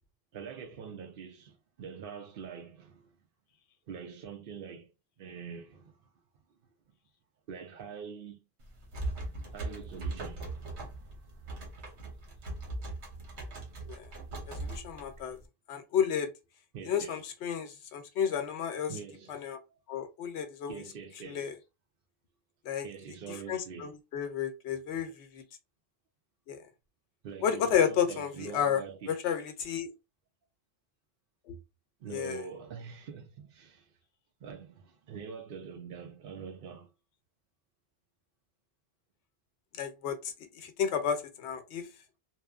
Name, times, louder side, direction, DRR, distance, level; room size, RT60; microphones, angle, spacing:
voice 1, 0.3-3.1 3.9-4.9 5.2-6.0 7.5-8.4 9.5-11.5 16.7-17.2 18.9-19.4 19.7-19.8 20.7-21.5 22.8-23.9 27.2-29.2 32.0-33.9 34.4-36.9, right 6 dB, 60° right, 0.7 m, -44 dB
sound 1, 8.6-15.4, right 2 dB, 85° right, 1.1 m, -40 dB
voice 2, 14.5-15.4 15.7-16.3 16.8-18.9 19.3-19.6 19.9-20.8 21.2-21.5 22.6-22.9 23.5-25.4 26.5-26.7 27.4-28.8 29.1-29.9 31.5-31.6 32.1-32.4 39.7-41.9, left 8 dB, 90° left, 0.9 m, -32 dB
2.9 x 2.0 x 2.3 m
omnidirectional pair, 1.1 m